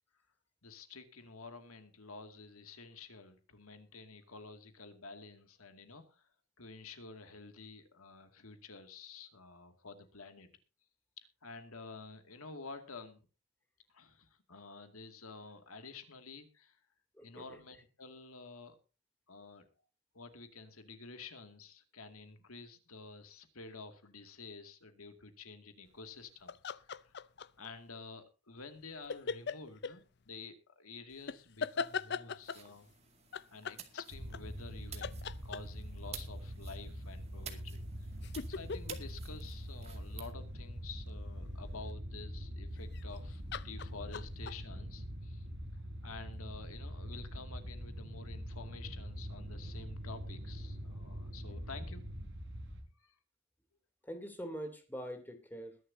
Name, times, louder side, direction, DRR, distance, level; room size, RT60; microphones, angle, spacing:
voice 1, 0.6-6.2 6.6-10.5 11.4-13.2 13.9-16.8 17.2-18.8 19.3-19.7 20.1-27.1 27.6-32.9 33.5-37.8 38.5-45.5 46.0-52.0 53.0-53.2, left 4 dB, 85° left, 7 dB, 2.3 m, -50 dB
voice 2, 17.1-17.6 54.0-55.8, equal, 10° left, 6 dB, 2.9 m, -44 dB
sound 1, 26.5-27.7 29.1-30.0 31.3-32.7 33.3-34.7 35.0-36.0 37.7-40.4 42.8-43.2 43.5-44.6, left 5 dB, 50° left, 0.5 m, -40 dB
sound 2, 32.4-40.3, right 8 dB, 30° right, 2.2 m, -52 dB
sound 3, 34.1-52.8, equal, 55° right, 4.8 m, -44 dB
21.5 x 11.0 x 2.7 m, 0.33 s
head